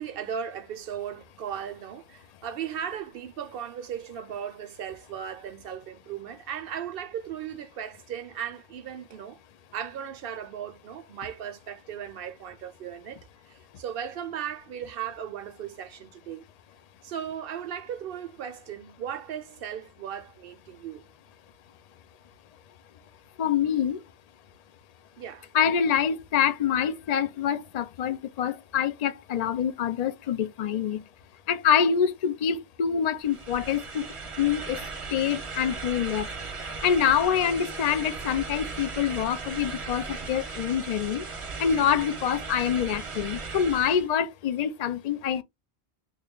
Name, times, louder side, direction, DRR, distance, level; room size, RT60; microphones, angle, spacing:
voice 1, 0.0-9.4 9.7-16.4 17.0-21.0 25.2-25.5, right 9 dB, 70° right, 0.7 m, -37 dB
voice 2, 23.4-24.0 25.5-31.0 31.5-34.1 34.4-34.8 35.1-36.3 36.8-41.3 41.6-45.4, left 8 dB, 55° left, 0.5 m, -26 dB
sound 1, 33.2-44.1, right 4 dB, 35° right, 0.7 m, -37 dB
3.1 x 2.4 x 3.6 m
omnidirectional pair, 1.1 m